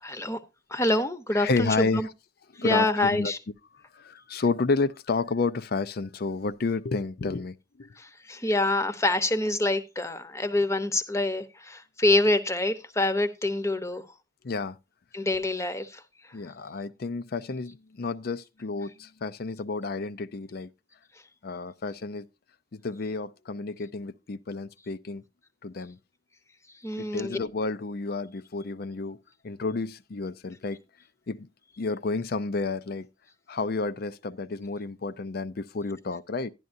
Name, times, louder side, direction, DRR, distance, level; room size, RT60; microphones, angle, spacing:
voice 1, 0.0-0.4 0.7-2.1 2.6-3.4 8.0-14.0 15.1-16.0 26.8-27.4, left 2 dB, 15° left, 0.8 m, -26 dB
voice 2, 1.3-2.1 2.5-3.3 3.9-7.9 14.4-14.8 16.3-20.7 21.4-22.3 22.7-25.2 25.6-26.0 27.0-29.2 29.4-30.8 31.3-31.5 31.8-33.1 33.5-36.5, left 3 dB, 55° left, 0.5 m, -31 dB
11.5 x 11.0 x 2.6 m
head